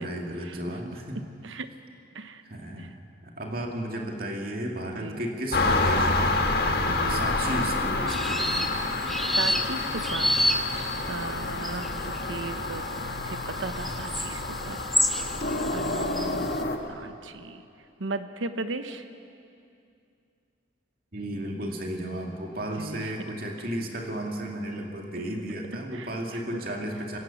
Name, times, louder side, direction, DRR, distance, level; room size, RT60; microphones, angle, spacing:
voice 1, 0.0-1.2 2.4-2.9 3.2-6.4 7.1-8.7 21.1-27.2, right 1 dB, 50° right, 1 dB, 2.5 m, -34 dB
voice 2, 1.1-1.7 2.1-2.4 2.8-2.9 4.8-5.2 6.9-7.2 9.2-10.4 11.1-12.8 13.2-14.8 15.2-15.4 15.7-16.5 16.9-17.6 18.0-19.0 22.8-23.1 25.9-26.6, right 3 dB, 80° right, 10 dB, 1.1 m, -37 dB
sound 1, 5.5-16.8, left 2 dB, 55° left, 1.5 m, -28 dB
sound 2, 8.1-16.5, equal, ahead, 0.8 m, -29 dB
24.0 x 17.0 x 7.1 m, 2.5 s
head